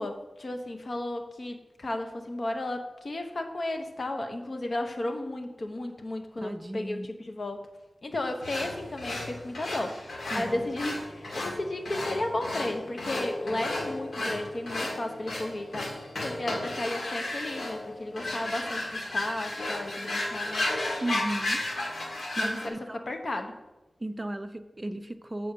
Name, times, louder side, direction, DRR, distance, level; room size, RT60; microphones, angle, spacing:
voice 1, 0.0-7.0 7.3-7.7 8.0-20.6 22.4-23.6, left 1 dB, 55° left, 5 dB, 1.0 m, -34 dB
voice 2, 6.4-7.1 10.3-10.7 21.0-21.6 22.4-23.1 24.0-25.5, right 1 dB, 25° right, 10 dB, 0.4 m, -35 dB
sound 1, 8.4-22.7, left 2 dB, 85° left, 1.8 m, -33 dB
7.9 x 4.2 x 6.8 m, 1.1 s
wide cardioid pair, 75°, 0 cm